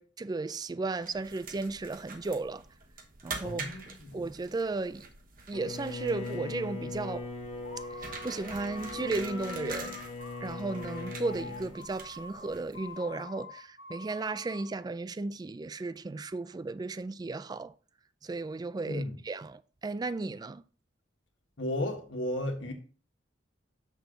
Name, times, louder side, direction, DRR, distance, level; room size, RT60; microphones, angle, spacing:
voice 1, 0.0-2.6 3.2-3.6 4.1-5.1 5.5-7.3 7.9-10.0 10.4-17.7 18.2-20.6, right 3 dB, 20° right, 0.3 m, -35 dB
sound 1, 1.0-13.0, right 4 dB, 50° right, 1.1 m, -46 dB
voice 2, 3.4-4.3 18.9-19.1 21.6-22.7, left 1 dB, 85° left, 1.6 m, -34 dB
Bowed string instrument, 5.5-11.8, left 3 dB, 35° left, 1.2 m, -40 dB
sound 2, 7.6-14.8, left 3 dB, 65° left, 0.9 m, -46 dB
7.0 x 6.2 x 3.8 m
head